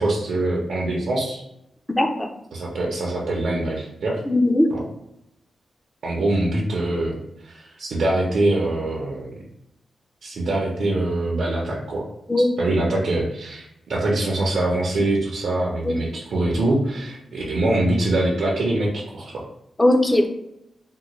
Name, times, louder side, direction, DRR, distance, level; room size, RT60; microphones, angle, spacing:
voice 1, 0.0-1.4 2.5-4.2 4.7-4.8 6.0-7.2 7.4-9.3 10.2-12.0 12.6-19.4, right 2 dB, 80° right, -4 dB, 0.6 m, -23 dB
voice 2, 2.0-2.3 4.3-4.7 12.3-12.5 15.8-16.0 19.8-20.3, left 1 dB, 15° left, 4 dB, 0.4 m, -18 dB
3.6 x 2.1 x 3.0 m, 0.82 s
wide cardioid pair, 120°, 0 cm